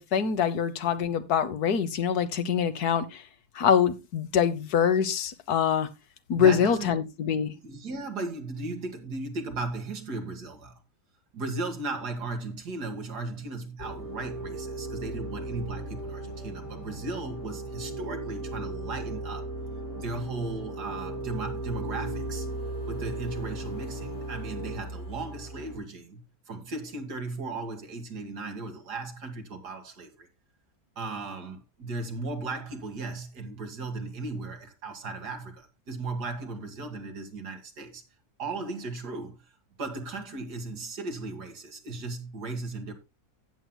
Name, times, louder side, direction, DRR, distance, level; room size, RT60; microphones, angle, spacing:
voice 1, 0.0-3.2 3.5-5.9 6.3-7.5, left 7 dB, 70° left, 1.5 m, -24 dB
voice 2, 6.3-6.9 7.6-10.8 11.3-19.5 19.9-22.5 22.9-30.3 31.0-38.0 38.4-39.4 39.8-42.9, right 3 dB, 75° right, 2.5 m, -36 dB
sound 1, 13.8-25.8, right 2 dB, 45° left, 3.9 m, -36 dB
16.0 x 7.6 x 2.2 m
omnidirectional pair, 1.7 m